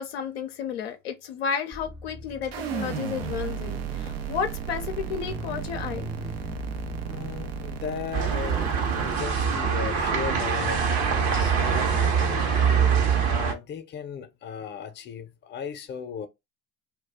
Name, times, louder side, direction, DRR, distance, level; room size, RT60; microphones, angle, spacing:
voice 1, 0.0-6.1, left 7 dB, 80° left, 0.5 m, -32 dB
sound 1, 1.7-10.8, right 1 dB, 10° right, 0.4 m, -40 dB
sound 2, 2.5-9.2, right 7 dB, 85° right, 0.5 m, -35 dB
voice 2, 7.0-12.7 13.2-16.3, left 7 dB, 35° left, 0.6 m, -37 dB
sound 3, 8.1-13.5, right 6 dB, 65° right, 0.8 m, -24 dB
2.3 x 2.2 x 3.4 m
hypercardioid pair, 60°, 30 cm